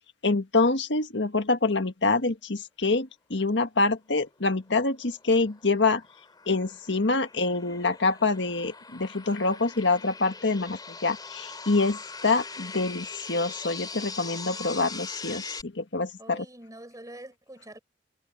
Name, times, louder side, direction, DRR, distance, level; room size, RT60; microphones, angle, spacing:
voice 1, 0.2-6.0 6.5-16.4, left 3 dB, 70° left, 1.7 m, -26 dB
sound 1, 5.0-15.6, left 4 dB, 25° left, 2.9 m, -41 dB
voice 2, 16.2-17.8, right 1 dB, 20° right, 4.8 m, -45 dB
head